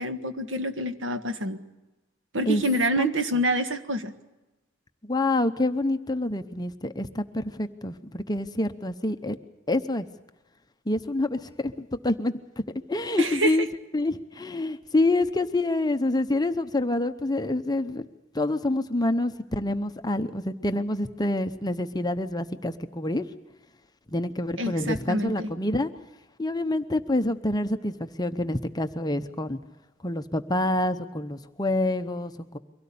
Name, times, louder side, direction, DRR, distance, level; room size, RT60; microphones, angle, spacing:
voice 1, 0.0-1.6 2.3-4.1 13.2-13.6 24.6-25.5, right 1 dB, 60° right, 7 dB, 1.6 m, -27 dB
voice 2, 5.0-9.4 9.7-10.1 10.9-12.3 12.9-13.7 13.9-18.1 18.3-23.2 24.1-25.9 26.4-29.6 30.0-32.6, left 2 dB, 20° left, 9 dB, 0.8 m, -27 dB
23.5 x 17.0 x 8.6 m, 1.1 s
head